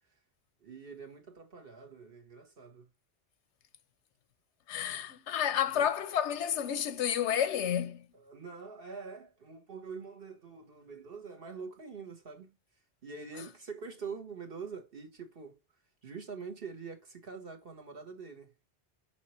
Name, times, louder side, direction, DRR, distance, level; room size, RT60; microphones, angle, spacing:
voice 1, 0.6-2.9 5.8-5.9 8.1-12.6 13.0-15.6 16.0-18.7, right 5 dB, 55° right, 1.6 m, -45 dB
voice 2, 4.7-8.0, left 9 dB, 90° left, 1.0 m, -30 dB
6.0 x 5.8 x 3.1 m
omnidirectional pair, 1.1 m